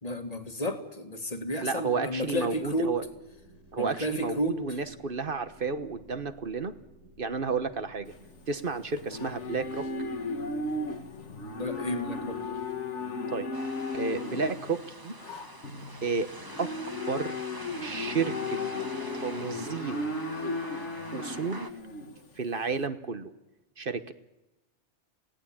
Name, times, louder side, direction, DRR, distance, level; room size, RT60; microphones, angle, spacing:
voice 1, 0.0-3.0 3.8-4.6 11.5-12.5, equal, 35° left, 7 dB, 2.0 m, -32 dB
voice 2, 1.6-3.0 3.7-6.7 7.2-8.1 8.5-9.9 13.3-13.5 13.9-15.1 16.0-16.3 16.6-16.7 17.1-17.4 17.8-18.6 19.2-20.2 21.1-21.7 22.4-23.3 23.8-24.1, right 5 dB, 50° right, 11 dB, 1.3 m, -31 dB
sound 1, 2.1-12.7, equal, 85° right, 6.0 m, -56 dB
Livestock farm animals working animals, 8.1-22.8, left 3 dB, 75° left, 1.9 m, -36 dB
sound 2, 13.5-21.7, right 2 dB, 20° right, 1.2 m, -45 dB
27.0 x 17.5 x 8.8 m, 1.0 s
omnidirectional pair, 1.2 m